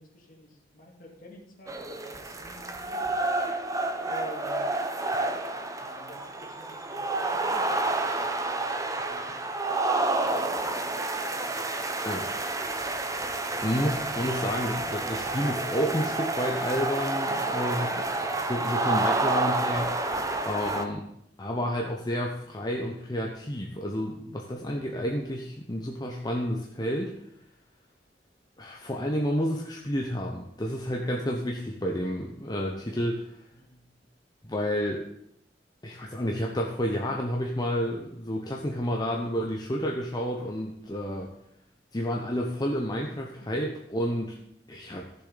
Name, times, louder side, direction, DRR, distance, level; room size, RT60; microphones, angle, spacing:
voice 1, 0.0-3.1 4.0-4.7 5.7-9.5 10.1-12.3 13.4-13.7 17.3-18.1 33.5-33.9 43.2-43.3, left 1 dB, 50° left, -1 dB, 2.6 m, -49 dB
sound 1, 1.7-20.8, right 2 dB, 20° right, 0.8 m, -29 dB
voice 2, 13.6-17.9 18.4-19.9 20.4-21.1 21.4-27.2 28.6-33.3 34.4-35.1 35.8-41.3 41.9-44.4 44.7-45.1, equal, 25° left, 0 dB, 0.9 m, -30 dB
14.5 x 7.0 x 4.0 m, 0.73 s
head